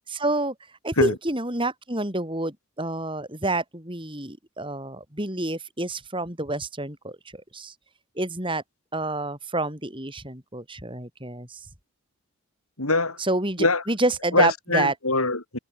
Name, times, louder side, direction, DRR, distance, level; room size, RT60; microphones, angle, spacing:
voice 1, 0.1-0.5 0.8-7.7 8.2-8.6 8.9-11.6 13.2-14.9, right 2 dB, 25° right, 7.6 m, -28 dB
voice 2, 12.8-13.2 13.6-13.8 14.3-15.6, left 3 dB, 80° left, 6.7 m, -23 dB
head